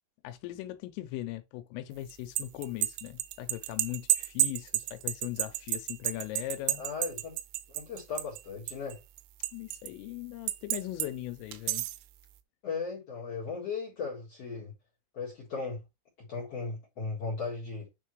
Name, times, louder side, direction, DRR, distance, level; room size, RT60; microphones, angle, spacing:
voice 1, 0.2-6.8 9.5-11.8, left 15 dB, 90° left, 3.2 m, -39 dB
sound 1, 2.1-8.4 8.7-9.9 10.5-11.1 11.5-12.0, right 15 dB, 90° right, 3.3 m, -31 dB
voice 2, 6.8-7.3 7.7-9.0 12.6-14.7 15.1-15.8 16.2-17.9, left 4 dB, 60° left, 1.6 m, -37 dB
9.1 x 3.7 x 3.1 m
omnidirectional pair, 5.8 m